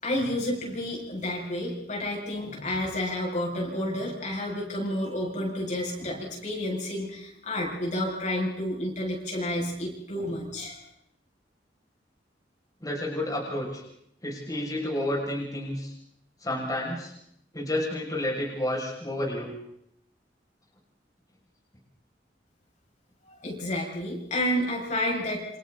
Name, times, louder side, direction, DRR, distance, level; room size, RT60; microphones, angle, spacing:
voice 1, 0.0-10.8 23.3-25.5, left 1 dB, 45° left, -2 dB, 7.0 m, -30 dB
voice 2, 12.8-13.8 14.2-15.9 16.4-17.1 17.5-19.5, left 1 dB, 20° left, -4 dB, 6.7 m, -30 dB
29.5 x 28.0 x 4.1 m, 0.75 s
head